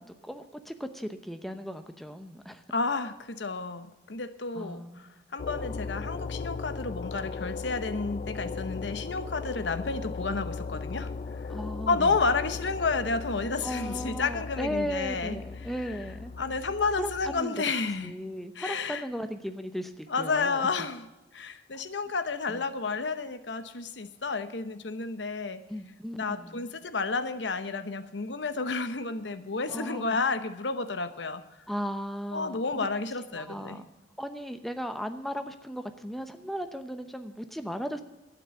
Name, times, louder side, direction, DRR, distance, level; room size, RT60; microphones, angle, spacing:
voice 1, 0.0-2.6 4.5-5.1 11.5-12.2 13.6-16.3 17.0-17.5 18.0-20.7 22.5-22.6 25.7-26.7 29.7-30.2 31.7-32.9 33.2-33.8 34.2-38.0, equal, ahead, 8 dB, 0.7 m, -36 dB
voice 2, 2.7-11.1 11.4-11.5 11.9-15.4 15.9-16.0 16.4-18.2 18.6-19.0 20.1-21.1 21.3-25.6 26.2-31.4 32.3-33.8, left 4 dB, 85° left, 11 dB, 0.9 m, -31 dB
sound 1, 5.4-17.4, left 4 dB, 40° left, 0.3 m, -37 dB
11.5 x 9.3 x 6.9 m, 1.1 s
head